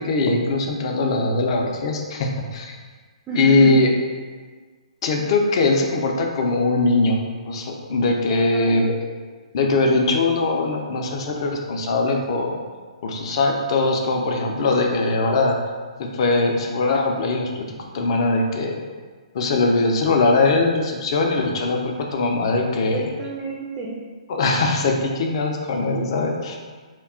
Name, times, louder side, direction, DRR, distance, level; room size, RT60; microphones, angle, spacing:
voice 1, 0.0-2.8 3.3-3.9 5.0-7.2 7.5-8.9 9.5-12.5 13.0-15.6 16.0-17.7 17.9-18.8 19.3-23.1 24.3-26.6, left 3 dB, 50° left, 2 dB, 0.4 m, -21 dB
voice 2, 3.3-3.7 8.2-8.8 22.9-23.9, right 3 dB, 20° right, -5 dB, 0.4 m, -30 dB
2.3 x 2.2 x 3.6 m, 1.5 s
figure-of-eight pair, 130°, 4 cm